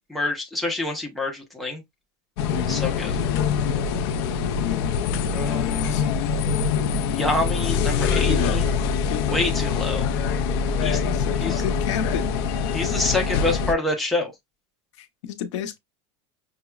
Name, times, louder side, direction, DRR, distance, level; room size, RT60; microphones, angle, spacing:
voice 1, 0.1-1.8 2.7-3.1 5.3-6.1 7.1-8.7 9.3-10.1 10.8-11.0 11.4-11.6 12.7-14.3, left 2 dB, ahead, 0.7 m, -27 dB
voice 2, 2.4-2.9 3.6-4.2 5.5-6.0 8.2-8.6 9.0-9.4 10.8-12.3 15.0-15.8, left 8 dB, 90° left, 0.8 m, -31 dB
sound 1, 2.4-13.7, left 6 dB, 55° left, 0.5 m, -24 dB
5.7 x 2.0 x 2.3 m
supercardioid pair, 165°, 15 cm